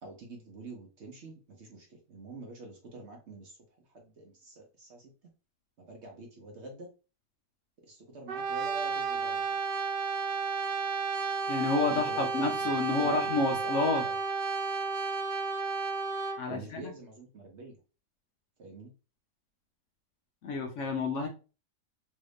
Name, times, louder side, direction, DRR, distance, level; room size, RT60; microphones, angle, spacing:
voice 1, 0.0-3.6 3.9-5.1 5.8-6.9 7.9-9.6 11.9-14.2 16.5-17.8 18.6-18.9, right 2 dB, 55° right, 1 dB, 0.8 m, -46 dB
Brass instrument, 8.3-16.5, right 4 dB, 85° right, 1.3 m, -32 dB
voice 2, 11.5-14.0 16.4-16.9 20.4-21.3, left 3 dB, 70° left, 4 dB, 0.7 m, -30 dB
3.1 x 2.5 x 3.3 m, 0.33 s
omnidirectional pair, 1.8 m